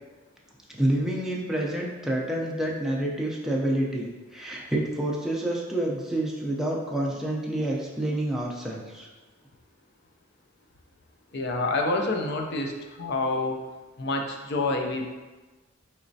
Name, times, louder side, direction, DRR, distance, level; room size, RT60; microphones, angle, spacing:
voice 1, 0.7-9.1, right 1 dB, ahead, -3 dB, 0.4 m, -28 dB
voice 2, 11.3-12.7 13.0-13.6 14.0-15.1, left 2 dB, 55° left, 2 dB, 0.4 m, -27 dB
4.1 x 3.0 x 2.6 m, 1.2 s
head